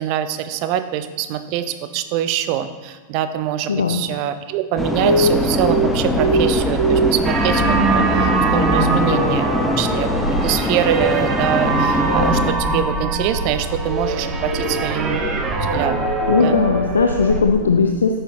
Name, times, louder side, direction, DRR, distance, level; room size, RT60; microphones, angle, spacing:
voice 1, 0.0-10.1 10.4-15.2 15.6-16.6, right 11 dB, 45° right, 10 dB, 0.5 m, -24 dB
voice 2, 3.7-4.0 16.3-18.2, left 5 dB, 70° left, 5 dB, 0.5 m, -17 dB
sound 1, 4.8-12.5, left 2 dB, 10° left, 0.6 m, -23 dB
sound 2, 5.0-17.3, right 2 dB, 70° right, 1.7 m, -24 dB
sound 3, 7.2-17.4, right 3 dB, 25° right, 0.9 m, -23 dB
8.9 x 6.5 x 3.0 m, 1.3 s
figure-of-eight pair, 90°, 0 cm